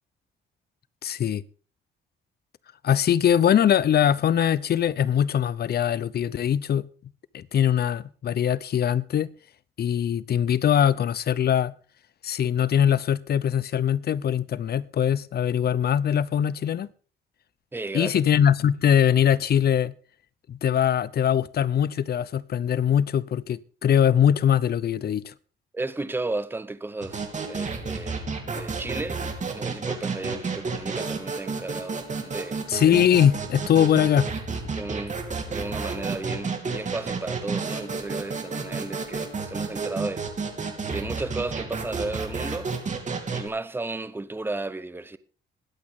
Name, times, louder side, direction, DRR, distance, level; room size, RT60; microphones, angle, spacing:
voice 1, 1.0-1.4 2.8-6.9 7.3-9.3 9.8-11.7 12.2-16.9 17.9-19.9 20.5-25.3 32.7-34.3, left 9 dB, 55° left, 0.7 m, -22 dB
voice 2, 17.7-18.2 25.7-32.6 34.7-35.1 35.5-40.3 40.8-42.7 43.3-45.2, right 2 dB, 10° right, 0.9 m, -34 dB
sound 1, 27.0-43.5, right 4 dB, 40° right, 2.8 m, -31 dB
21.0 x 8.5 x 3.7 m
cardioid pair, 90°, 20 cm